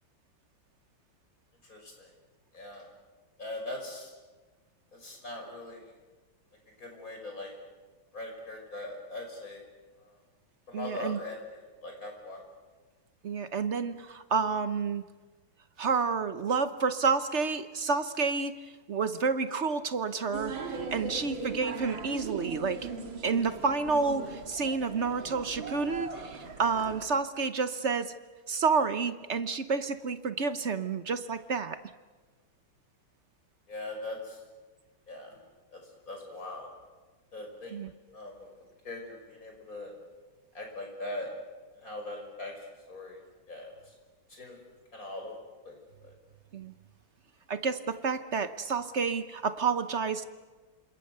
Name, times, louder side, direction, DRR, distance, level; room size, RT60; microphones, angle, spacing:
voice 1, 1.6-2.1 2.5-2.9 3.4-4.1 4.9-5.9 6.8-7.5 8.1-9.6 10.0-10.2 10.7-12.4 33.7-34.4 35.1-35.4 35.7-35.8 36.1-36.7 37.3-37.8 38.1-38.5 38.8-39.9 40.5-41.3 41.8-43.2 43.5-43.9 44.3-44.6 44.9-45.4 45.6-45.8 46.0-46.1, left 2 dB, 40° left, 2 dB, 6.4 m, -41 dB
voice 2, 10.7-11.2 13.2-15.0 15.8-22.9 23.2-28.1 28.5-31.8 37.7-37.9 46.5-46.7 47.5-50.2, right 5 dB, 50° right, 11 dB, 0.8 m, -30 dB
sound 1, 20.3-27.1, right 4 dB, 65° right, 2.9 m, -39 dB
28.5 x 27.0 x 6.8 m, 1.3 s
omnidirectional pair, 2.3 m